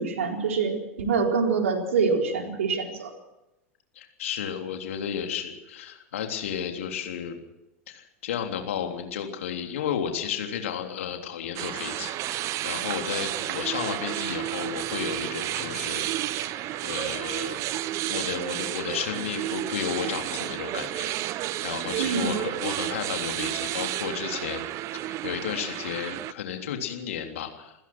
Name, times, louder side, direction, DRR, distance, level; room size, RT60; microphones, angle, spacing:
voice 1, 0.0-3.1 22.0-22.4, right 5 dB, 70° right, 2 dB, 4.3 m, -25 dB
voice 2, 4.0-7.4 7.9-16.0 16.4-17.6 18.1-24.6 24.9-27.7, left 8 dB, 65° left, 4 dB, 3.4 m, -33 dB
sound 1, 11.6-26.3, right 15 dB, 40° right, 0.9 m, -31 dB
28.0 x 16.0 x 6.1 m, 0.94 s
figure-of-eight pair, 85°, 8 cm